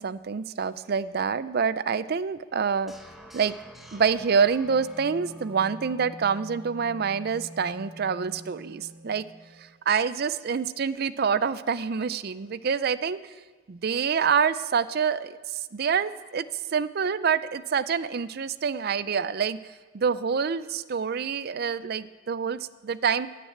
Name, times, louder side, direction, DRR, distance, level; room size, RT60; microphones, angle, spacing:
voice 1, 0.0-2.9 3.3-3.5 3.9-9.2 9.6-13.2 13.7-23.3, right 6 dB, 55° right, 16 dB, 0.5 m, -27 dB
sound 1, 2.9-9.8, equal, ahead, 1.2 m, -45 dB
16.0 x 6.7 x 8.6 m, 1.4 s
head